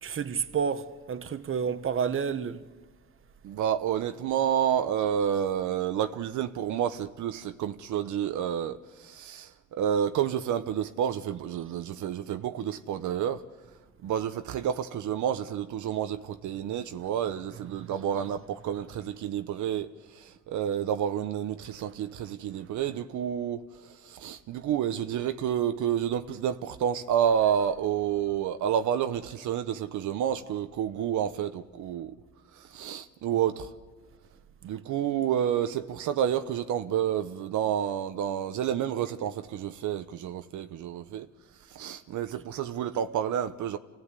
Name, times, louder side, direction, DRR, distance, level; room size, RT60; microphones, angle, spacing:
voice 1, 0.0-2.6 17.8-17.9, right 7 dB, 45° right, 1.1 m, -30 dB
voice 2, 3.4-13.4 14.0-32.1 32.5-33.7 34.6-41.3 41.7-43.8, right 9 dB, 75° right, 0.9 m, -29 dB
26.5 x 17.5 x 8.3 m
cardioid pair, 90°, 30 cm